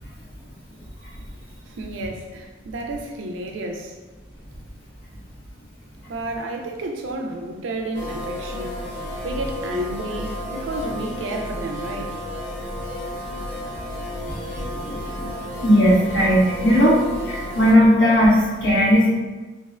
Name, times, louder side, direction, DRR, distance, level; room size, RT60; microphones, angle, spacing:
voice 1, 1.7-3.9 6.1-8.8 9.2-12.2, right 1 dB, 75° right, 2 dB, 0.3 m, -31 dB
sound 1, 7.9-17.7, left 1 dB, 60° left, 0.4 m, -32 dB
voice 2, 14.7-15.3 15.6-17.0 17.2-19.1, equal, 80° left, -8 dB, 1.1 m, -17 dB
2.5 x 2.1 x 2.4 m, 1.2 s
head